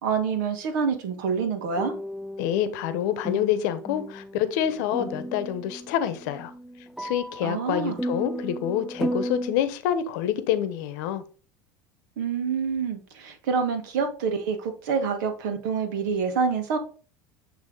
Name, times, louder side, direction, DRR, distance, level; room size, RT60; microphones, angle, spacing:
voice 1, 0.0-1.9 7.4-8.0 12.2-16.8, right 5 dB, 75° right, 1.6 m, -27 dB
sound 1, 1.8-9.5, equal, ahead, 0.4 m, -34 dB
voice 2, 2.4-6.5 7.0-11.2, left 10 dB, 70° left, 0.9 m, -27 dB
8.2 x 3.3 x 3.8 m
hypercardioid pair, 95°, 10 cm